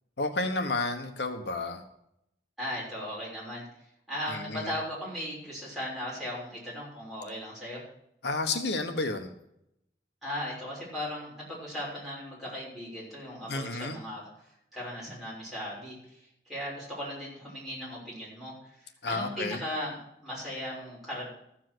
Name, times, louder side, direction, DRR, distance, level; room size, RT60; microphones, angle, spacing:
voice 1, 0.2-1.8 4.3-4.7 8.2-9.3 13.5-14.0 19.0-19.6, left 3 dB, 75° left, 6 dB, 1.2 m, -31 dB
voice 2, 2.6-3.6 4.1-7.8 10.2-21.2, equal, ahead, -7 dB, 6.2 m, -37 dB
14.0 x 7.4 x 6.2 m, 0.79 s
head